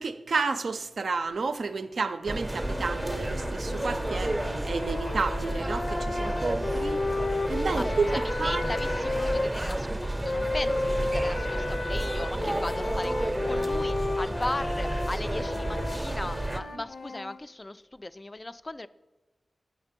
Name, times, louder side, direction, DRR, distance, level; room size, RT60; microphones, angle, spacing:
voice 1, 0.0-7.0 7.3-8.1 8.4-8.6 9.9-10.0, right 4 dB, 80° right, 0.4 m, -31 dB
sound 1, 2.3-16.6, right 1 dB, 20° right, 0.5 m, -31 dB
sound 2, 2.6-9.5 10.2-17.4, left 2 dB, 75° left, 0.6 m, -33 dB
voice 2, 8.1-18.9, left 2 dB, 30° left, 0.3 m, -37 dB
8.9 x 5.5 x 5.1 m
cardioid pair, 55°, 0 cm